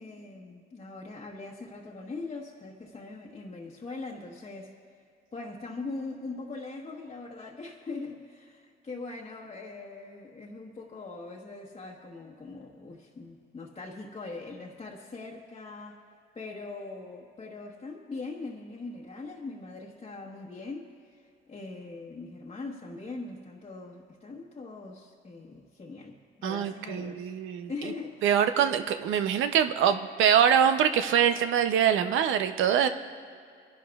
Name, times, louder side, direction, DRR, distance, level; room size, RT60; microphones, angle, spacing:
voice 1, 0.0-4.7 5.3-16.0 16.3-27.3 27.7-28.4, left 3 dB, 30° left, -3 dB, 1.2 m, -41 dB
voice 2, 26.4-27.7 28.2-32.9, right 9 dB, 85° right, 9 dB, 0.6 m, -24 dB
22.5 x 11.0 x 2.4 m, 2.2 s
cardioid pair, 90°, 20 cm